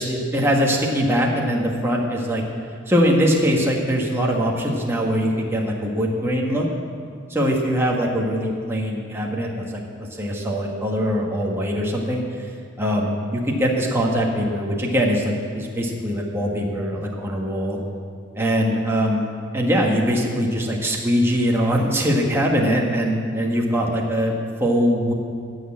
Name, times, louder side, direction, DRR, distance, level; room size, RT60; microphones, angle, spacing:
voice 1, 0.0-2.4 2.9-6.6 7.3-12.2 12.8-17.8 18.3-19.3 19.5-24.3 24.6-25.1, equal, 10° right, -2 dB, 1.5 m, -22 dB
16.0 x 6.4 x 8.7 m, 2.2 s
head